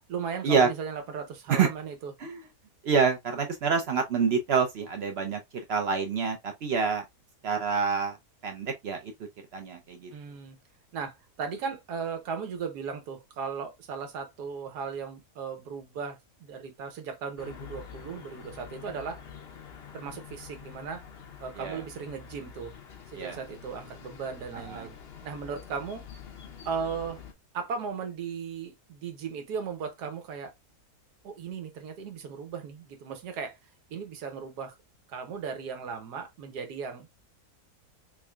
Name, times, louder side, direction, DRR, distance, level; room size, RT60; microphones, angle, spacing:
voice 1, 0.1-2.1 10.1-10.6 10.9-19.2 19.9-21.0 21.4-22.7 23.1-24.9 25.2-26.0 26.6-27.2 27.5-30.5 31.2-33.6 33.9-34.7 35.1-37.1, right 6 dB, 85° right, 1.4 m, -36 dB
voice 2, 2.8-5.4 5.7-7.0 7.4-8.2 8.4-9.1 9.5-10.1 21.6-21.8 23.1-23.4 24.7-24.9, right 5 dB, 60° right, 0.7 m, -27 dB
sound 1, 17.4-27.3, left 8 dB, 55° left, 0.7 m, -47 dB
3.6 x 3.2 x 2.3 m
omnidirectional pair, 1.7 m